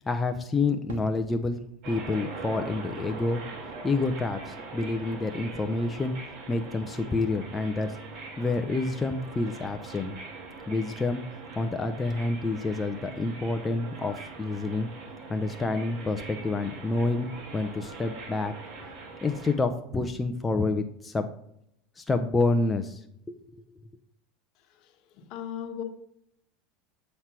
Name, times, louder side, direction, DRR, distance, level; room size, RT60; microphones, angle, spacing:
voice 1, 0.0-3.4 3.8-6.1 6.5-8.0 8.4-10.2 10.7-11.2 11.6-14.9 15.3-18.5 19.2-21.3 22.0-23.6, left 3 dB, 15° left, 6 dB, 0.6 m, -28 dB
Fireworks, 0.9-5.2 5.5-6.3, right 2 dB, 90° right, 1.3 m, -50 dB
sound 1, 1.8-19.5, right 3 dB, 60° right, 2.1 m, -42 dB
voice 2, 24.6-25.8, left 9 dB, 60° left, 5 dB, 1.2 m, -39 dB
7.4 x 3.3 x 5.8 m, 0.72 s
supercardioid pair, 100°, 0 cm